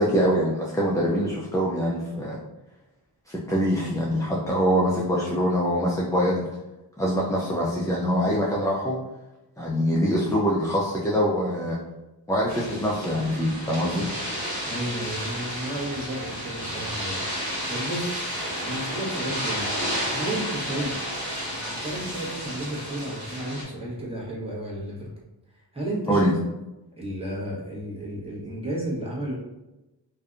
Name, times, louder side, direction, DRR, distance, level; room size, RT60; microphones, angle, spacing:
voice 1, 0.0-2.4 3.3-6.5 7.0-9.0 9.6-11.8 12.3-14.1 26.1-26.3, equal, 10° left, -5 dB, 0.4 m, -24 dB
sound 1, 12.5-23.6, equal, 40° right, 1.3 m, -32 dB
voice 2, 14.7-17.2 17.7-18.2 18.6-19.7 20.1-21.0 21.7-25.1 25.7-26.3 27.0-29.4, right 1 dB, 15° right, -7 dB, 1.1 m, -32 dB
2.6 x 2.3 x 2.5 m, 1.0 s
cardioid pair, 45°, 45 cm